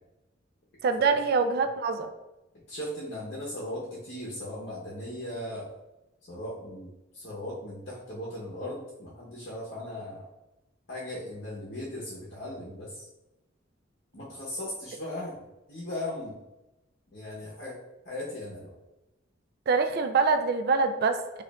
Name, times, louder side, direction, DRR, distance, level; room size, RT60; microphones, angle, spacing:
voice 1, 0.8-2.1 19.7-21.4, right 4 dB, 50° right, 8 dB, 0.3 m, -25 dB
voice 2, 2.7-5.7 6.3-10.3 10.9-13.1 14.1-16.4 17.1-17.8 18.0-18.7, left 1 dB, 55° left, -5 dB, 0.8 m, -38 dB
4.9 x 2.4 x 2.2 m, 0.98 s
head